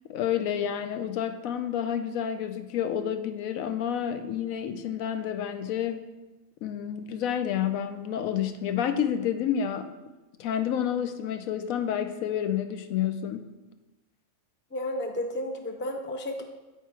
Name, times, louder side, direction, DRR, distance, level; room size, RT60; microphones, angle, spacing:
voice 1, 0.1-6.0 6.6-9.9 10.4-13.5, left 9 dB, 85° left, 9 dB, 1.0 m, -29 dB
voice 2, 14.7-16.4, left 1 dB, 15° left, 3 dB, 0.4 m, -32 dB
9.1 x 4.5 x 4.6 m, 1.1 s
omnidirectional pair, 1.4 m